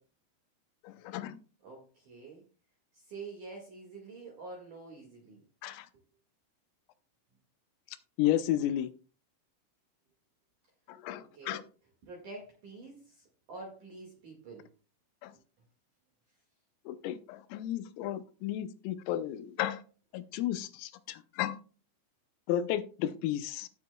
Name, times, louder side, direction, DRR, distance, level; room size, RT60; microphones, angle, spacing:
voice 1, 0.8-1.4 5.6-5.9 8.2-8.9 10.9-11.6 15.2-15.3 16.9-19.8 20.1-21.6 22.5-23.7, left 12 dB, 85° left, 3.4 m, -33 dB
voice 2, 1.6-2.4 2.9-5.4 11.3-11.6 12.0-14.7, right 3 dB, 50° right, 2.6 m, -47 dB
16.0 x 7.6 x 2.3 m
omnidirectional pair, 5.8 m